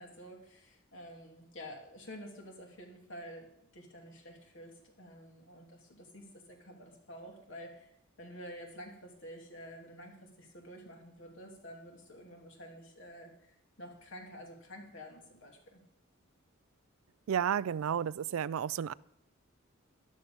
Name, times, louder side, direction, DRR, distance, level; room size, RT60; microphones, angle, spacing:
voice 1, 0.0-7.9 8.2-15.8, equal, 65° left, 1 dB, 2.9 m, -49 dB
voice 2, 17.3-18.9, right 8 dB, 85° right, 20 dB, 0.4 m, -32 dB
13.0 x 11.5 x 5.2 m, 0.75 s
head